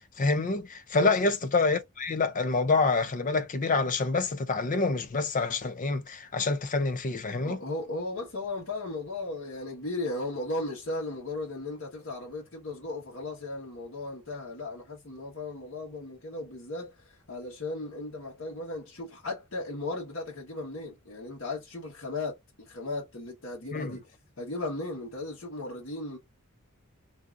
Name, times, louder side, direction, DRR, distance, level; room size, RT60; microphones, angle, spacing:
voice 1, 0.2-7.6 23.7-23.9, left 3 dB, 35° left, 0.5 m, -27 dB
voice 2, 7.4-24.0 24.4-26.2, left 2 dB, 60° left, 1.2 m, -36 dB
3.7 x 2.7 x 2.3 m
head